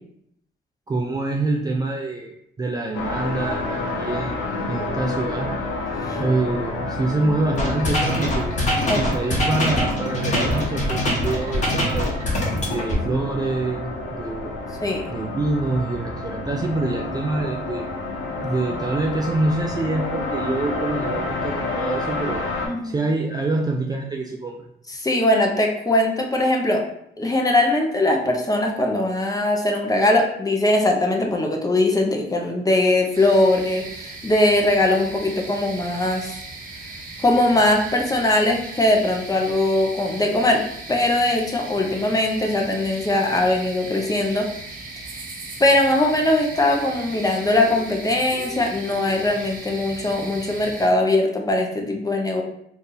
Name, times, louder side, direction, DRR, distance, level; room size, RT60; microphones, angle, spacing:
voice 1, 0.9-5.5 6.2-8.6 9.0-12.2 12.7-14.6 15.1-17.9 18.4-22.4 22.8-24.7, right 2 dB, 20° right, 0 dB, 0.3 m, -26 dB
sound 1, 2.9-22.7, left 2 dB, 80° left, 0.8 m, -29 dB
sound 2, 7.5-13.0, left 1 dB, 35° left, 1.0 m, -23 dB
voice 2, 24.9-26.8 27.2-36.3 37.2-40.6 40.9-44.5 45.6-52.4, left 1 dB, 20° left, 2 dB, 0.6 m, -20 dB
sound 3, 33.1-50.9, right 3 dB, 45° right, 0.7 m, -37 dB
2.7 x 2.5 x 3.8 m, 0.73 s
cardioid pair, 90°, 20 cm